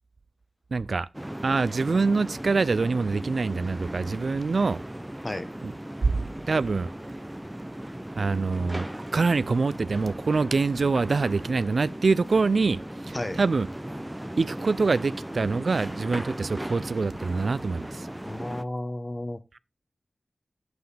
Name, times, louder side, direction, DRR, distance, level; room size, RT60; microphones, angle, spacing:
voice 1, 0.7-1.1 1.4-4.8 5.6-5.7 6.0-6.1 6.5-6.9 8.2-8.9 9.1-12.8 13.1-13.7 14.4-18.1, right 4 dB, 70° right, 0.4 m, -25 dB
sound 1, 1.1-18.6, right 1 dB, 10° right, 0.5 m, -37 dB
voice 2, 18.2-19.4, left 1 dB, 30° left, 1.1 m, -32 dB
9.3 x 7.8 x 3.3 m
cardioid pair, 55°, 0 cm